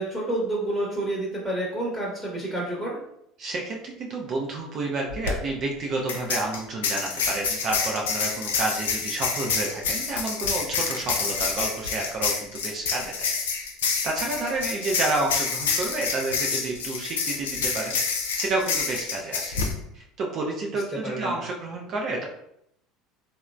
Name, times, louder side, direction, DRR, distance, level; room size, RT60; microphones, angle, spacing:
voice 1, 0.0-3.0 20.7-21.4, right 1 dB, ahead, -6 dB, 0.9 m, -29 dB
voice 2, 3.4-12.3 12.6-13.3 14.0-18.0 18.3-19.6 19.9-22.2, right 2 dB, 50° right, 0 dB, 0.5 m, -30 dB
sound 1, 5.1-5.3 6.1-19.7, left 5 dB, 85° left, 0.4 m, -28 dB
3.0 x 2.0 x 2.4 m, 0.76 s
hypercardioid pair, 75°, 0 cm